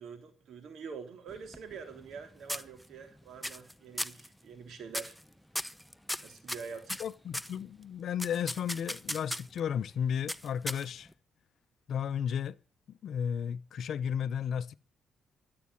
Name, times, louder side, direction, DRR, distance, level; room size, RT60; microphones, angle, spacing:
voice 1, 0.0-5.2 6.2-7.0, right 5 dB, 65° right, 3.5 m, -45 dB
sound 1, 1.3-2.2 2.5-3.1 3.4-3.7 4.0-4.3 4.9-5.2 5.6-7.6 8.2-9.6 10.3-11.1, equal, ahead, 0.7 m, -37 dB
voice 2, 7.0-11.1 11.9-12.6 12.9-14.8, left 8 dB, 65° left, 0.7 m, -33 dB
14.0 x 8.6 x 8.4 m
cardioid pair, 90°, 0 cm